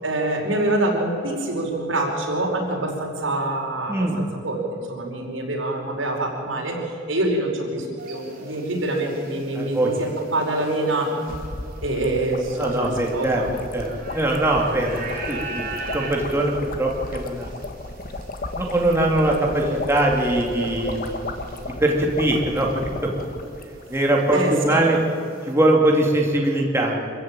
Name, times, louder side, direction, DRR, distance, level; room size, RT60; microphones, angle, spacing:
voice 1, 0.0-6.8 7.1-11.1 11.8-13.5 24.3-25.0, right 2 dB, 85° right, 0 dB, 4.9 m, -25 dB
voice 2, 3.9-4.2 9.5-9.9 12.6-13.4 13.7-17.5 18.5-21.1 21.8-23.1 23.9-25.0 25.5-27.0, right 1 dB, 15° right, -1 dB, 2.5 m, -22 dB
sound 1, 8.0-23.2 23.5-25.5, right 2 dB, 50° right, 3.8 m, -39 dB
sound 2, 11.3-24.0 24.3-24.4 24.6-24.9, left 2 dB, 50° left, 1.5 m, -35 dB
25.5 x 15.0 x 8.9 m, 2.6 s
head